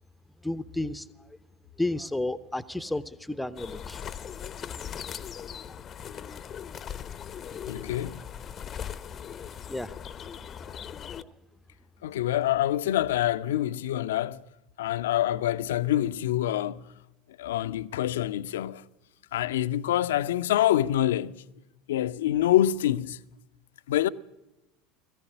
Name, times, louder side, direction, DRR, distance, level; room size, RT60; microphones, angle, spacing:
voice 1, 0.4-1.1 1.8-4.0 5.6-5.8 9.7-9.9 11.2-11.3, left 2 dB, 5° left, 0.8 m, -32 dB
sound 1, 3.5-11.2, left 8 dB, 30° left, 0.8 m, -39 dB
voice 2, 7.7-8.2 12.0-14.5 14.8-16.9 17.4-18.9 19.3-21.4 21.9-23.2 23.9-24.1, left 12 dB, 65° left, 0.7 m, -26 dB
21.0 x 14.5 x 9.9 m
figure-of-eight pair, 75°, 0 cm